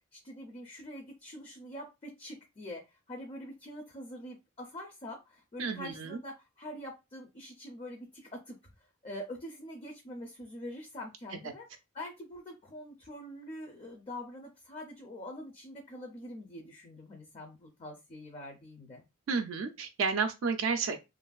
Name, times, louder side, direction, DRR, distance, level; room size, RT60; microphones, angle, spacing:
voice 1, 0.1-8.6 9.0-11.7 11.9-19.0, left 1 dB, 30° left, 0.4 m, -44 dB
voice 2, 5.6-6.2 19.3-21.0, right 5 dB, 70° right, 0.3 m, -31 dB
3.0 x 2.5 x 2.2 m
head